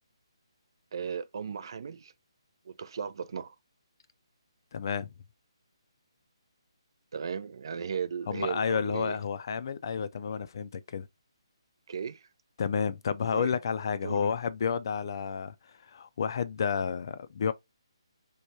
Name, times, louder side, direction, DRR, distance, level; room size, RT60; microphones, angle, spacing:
voice 1, 0.9-2.1 2.7-3.6 7.1-9.2 11.9-12.2 13.3-13.6 14.0-14.3, right 6 dB, 55° right, 0.3 m, -36 dB
voice 2, 4.7-5.1 8.3-11.1 12.6-15.5 15.8-17.5, left 6 dB, 50° left, 0.3 m, -31 dB
3.1 x 2.2 x 2.6 m
figure-of-eight pair, 150°, 3 cm